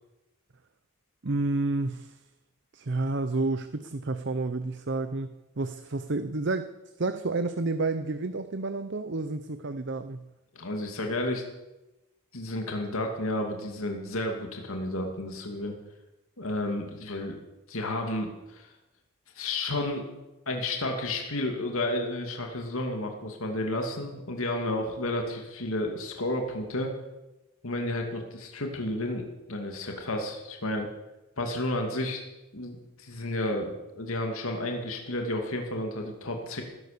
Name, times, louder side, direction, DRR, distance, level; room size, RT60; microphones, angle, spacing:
voice 1, 1.2-2.2 2.7-6.7 7.0-10.2, right 3 dB, 50° right, 10 dB, 0.7 m, -30 dB
voice 2, 10.5-11.4 12.3-15.7 16.4-17.4 17.7-18.7 19.3-20.1 20.5-26.9 27.6-30.9 31.4-32.2 32.5-36.6, left 1 dB, 70° left, 3 dB, 2.5 m, -31 dB
19.0 x 11.0 x 6.8 m, 1.0 s
head